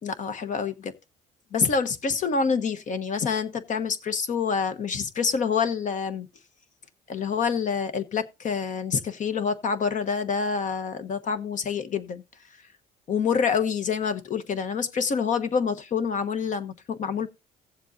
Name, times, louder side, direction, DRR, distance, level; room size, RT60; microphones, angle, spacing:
voice 1, 0.0-0.7 1.5-6.3 7.1-12.2 13.1-17.3, left 6 dB, 50° left, 1.2 m, -27 dB
17.0 x 7.4 x 2.7 m
cardioid pair, 110°, 17 cm